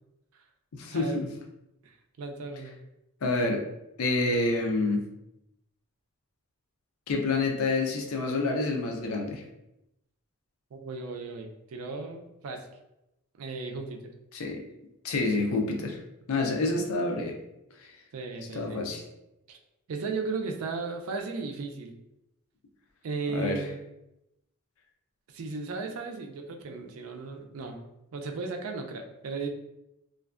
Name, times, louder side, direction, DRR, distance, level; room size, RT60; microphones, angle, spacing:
voice 1, 0.7-1.3 3.2-3.6 4.0-5.0 7.1-9.4 14.3-14.6 15.0-16.0 16.3-17.4 18.5-19.0 23.3-23.6, left 2 dB, 75° left, 2 dB, 0.5 m, -27 dB
voice 2, 1.8-2.8 10.7-12.7 13.4-14.1 18.1-18.8 19.5-19.6 19.9-22.0 23.0-23.8 25.3-27.8 28.1-29.5, right 4 dB, 75° right, 4 dB, 0.4 m, -36 dB
2.4 x 2.2 x 2.4 m, 0.88 s
head